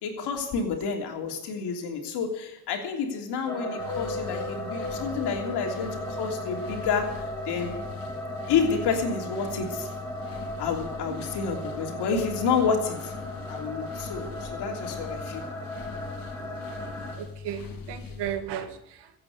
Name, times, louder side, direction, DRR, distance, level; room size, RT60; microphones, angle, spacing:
voice 1, 0.0-7.8 8.5-9.9 10.6-13.1 13.5-15.4, left 5 dB, 80° left, 3 dB, 3.2 m, -29 dB
sound 1, 3.5-17.2, equal, 5° left, 3.9 m, -36 dB
sound 2, 3.8-18.4, left 5 dB, 55° left, 2.6 m, -41 dB
voice 2, 17.2-19.2, right 9 dB, 85° right, 8 dB, 2.0 m, -35 dB
15.5 x 8.7 x 9.6 m, 0.86 s
cardioid pair, 90°, 40 cm